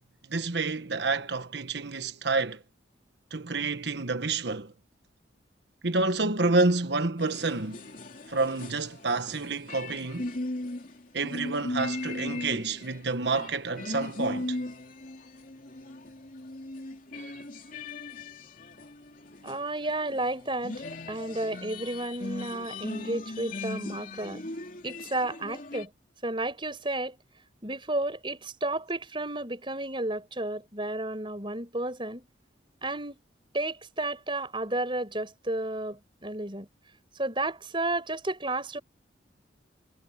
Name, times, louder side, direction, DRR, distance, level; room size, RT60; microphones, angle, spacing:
voice 1, 0.3-2.6 3.3-4.7 5.8-7.8 8.3-10.3 11.1-14.6, right 3 dB, 65° right, 1.3 m, -28 dB
sound 1, 7.2-13.0 13.3-25.9, left 2 dB, 45° left, 3.1 m, -38 dB
voice 2, 19.4-24.4 24.8-25.9 26.2-27.2 27.6-32.2 32.8-33.2 33.5-36.7 37.2-38.8, right 2 dB, 25° right, 5.5 m, -32 dB
head